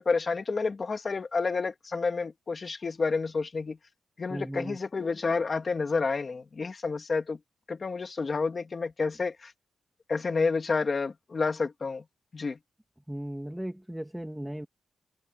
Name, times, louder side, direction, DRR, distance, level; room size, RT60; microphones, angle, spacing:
voice 1, 0.0-3.8 4.2-7.4 7.7-9.5 10.1-12.0 12.3-12.6, left 4 dB, 35° left, 2.8 m, -29 dB
voice 2, 4.3-4.8 13.1-14.7, right 1 dB, 5° right, 1.7 m, -36 dB
wide cardioid pair, 160°, 0 cm